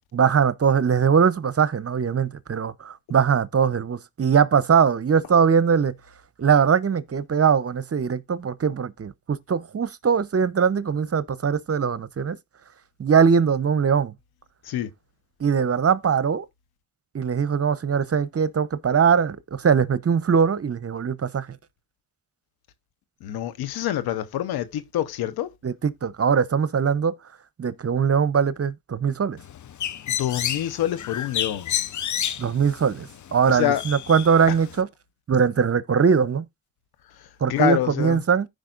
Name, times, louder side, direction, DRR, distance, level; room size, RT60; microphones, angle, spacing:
voice 1, 0.1-5.9 6.4-12.4 13.0-14.1 15.4-16.5 17.1-21.5 25.6-27.2 27.6-29.4 32.4-34.9 35.3-36.4 37.4-38.5, right 6 dB, 40° right, 0.8 m, -21 dB
voice 2, 23.2-25.5 30.1-31.7 33.5-33.8 37.2-38.2, left 12 dB, 85° left, 0.8 m, -26 dB
Bird, 29.4-34.8, left 10 dB, 50° left, 0.7 m, -31 dB
15.0 x 5.1 x 2.5 m
supercardioid pair, 50°, 36 cm